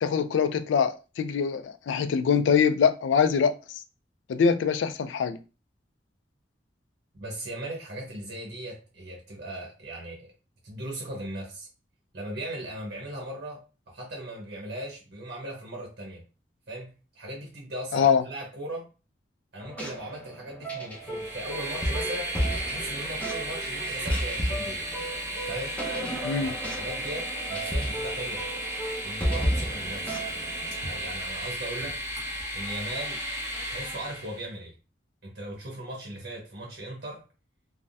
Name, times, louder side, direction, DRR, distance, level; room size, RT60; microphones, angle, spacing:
voice 1, 0.0-3.5 4.3-5.4 17.9-18.2 26.2-26.5, left 6 dB, 85° left, 0.3 m, -23 dB
voice 2, 7.1-10.3 10.6-11.7 12.1-13.6 13.9-16.2 16.7-18.9 19.5-22.3 22.6-24.9 25.5-25.8 26.4-28.5 29.0-30.2 30.8-32.0 32.5-33.2 33.7-34.7 35.2-37.2, right 1 dB, 60° right, 0.9 m, -38 dB
sound 1, 19.6-31.2, equal, 10° left, 0.6 m, -33 dB
Train, 20.9-34.4, right 1 dB, 20° right, 0.9 m, -34 dB
3.3 x 2.1 x 2.6 m
head